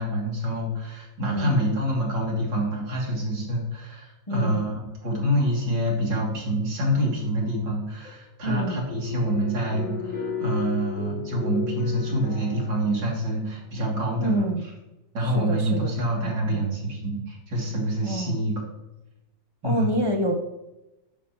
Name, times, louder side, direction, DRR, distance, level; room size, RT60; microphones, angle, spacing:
voice 1, 0.0-14.7 15.1-18.6 19.6-19.9, right 1 dB, 85° right, -2 dB, 3.5 m, -26 dB
voice 2, 1.3-1.6 4.3-4.6 8.4-8.8 14.2-14.6 15.2-15.9 16.2-16.6 18.0-18.4 19.6-20.4, equal, 25° left, 3 dB, 0.6 m, -28 dB
sound 1, 7.2-7.7 8.0-8.2 8.5-13.7, left 7 dB, 85° left, 3.0 m, -35 dB
12.5 x 9.0 x 3.1 m, 0.97 s
omnidirectional pair, 1.9 m